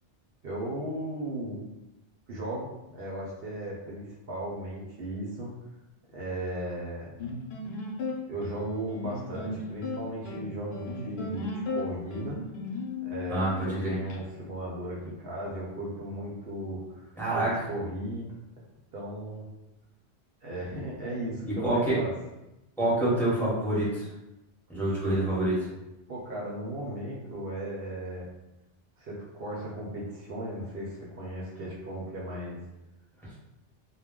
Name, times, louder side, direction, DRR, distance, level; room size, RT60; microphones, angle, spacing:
voice 1, 0.4-1.7 2.3-5.5 6.1-7.1 8.3-12.4 13.0-18.4 18.9-19.4 20.4-22.1 26.1-28.3 29.0-32.7, right 1 dB, 65° right, -4 dB, 0.8 m, -36 dB
sound 1, 7.2-14.2, left 3 dB, 70° left, 0.8 m, -36 dB
voice 2, 13.3-14.0 17.2-17.5 21.6-22.0 22.8-24.1 24.7-25.6, right 1 dB, ahead, -8 dB, 0.9 m, -26 dB
2.2 x 2.1 x 3.6 m, 0.94 s
omnidirectional pair, 1.1 m